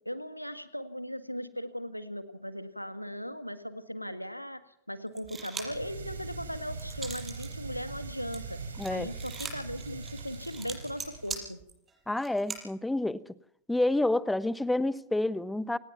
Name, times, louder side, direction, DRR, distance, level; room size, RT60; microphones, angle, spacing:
voice 1, 0.1-4.6 4.9-8.6 8.9-11.6, equal, 90° left, 1.8 m, -38 dB
sound 1, 5.2-5.9 6.3-7.5 7.9-12.6, right 5 dB, 20° right, 6.6 m, -41 dB
sound 2, 5.5-11.4, right 4 dB, 75° right, 5.1 m, -41 dB
voice 2, 8.8-9.1 12.1-13.2 13.7-15.8, left 2 dB, 5° left, 1.1 m, -28 dB
28.0 x 19.5 x 5.9 m
figure-of-eight pair, 90°, 0 cm